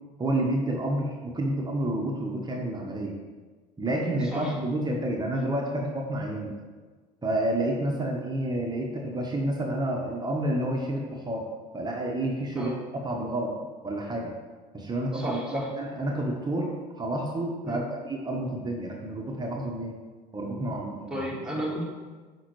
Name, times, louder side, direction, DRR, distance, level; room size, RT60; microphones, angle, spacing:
voice 1, 0.2-3.2 3.8-6.6 7.2-11.4 11.7-12.7 13.0-13.5 13.8-14.3 14.7-20.0 20.3-21.3, right 1 dB, 20° right, 0 dB, 1.0 m, -29 dB
voice 2, 15.1-15.7 17.6-17.8 21.1-21.9, equal, 5° right, -4 dB, 1.7 m, -33 dB
6.0 x 5.2 x 3.1 m, 1.4 s
hypercardioid pair, 75°, 20 cm